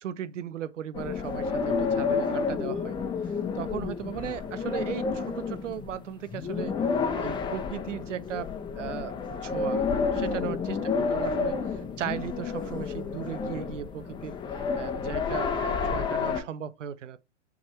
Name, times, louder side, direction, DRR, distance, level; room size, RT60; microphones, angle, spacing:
voice 1, 0.0-3.0 3.6-6.8 7.2-8.5 8.7-9.1 9.4-11.6 12.0-14.4 14.8-17.2, right 10 dB, 75° right, 0.9 m, -37 dB
sound 1, 0.9-16.4, left 5 dB, 10° left, 1.1 m, -30 dB
6.2 x 3.6 x 4.3 m
hypercardioid pair, 130°, 37 cm